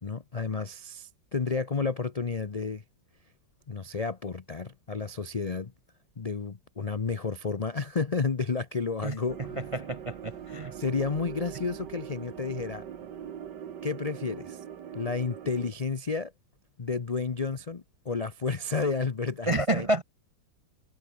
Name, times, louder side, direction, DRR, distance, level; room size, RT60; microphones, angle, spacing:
voice 1, 0.0-2.8 3.7-5.7 6.2-9.6 10.7-12.8 13.8-14.6 14.9-16.3 16.8-19.9, left 4 dB, 70° left, 0.3 m, -31 dB
sound 1, 9.3-15.7, right 9 dB, 70° right, 1.9 m, -42 dB
voice 2, 9.6-10.7 19.5-20.0, right 1 dB, 45° right, 0.4 m, -29 dB
omnidirectional pair, 2.0 m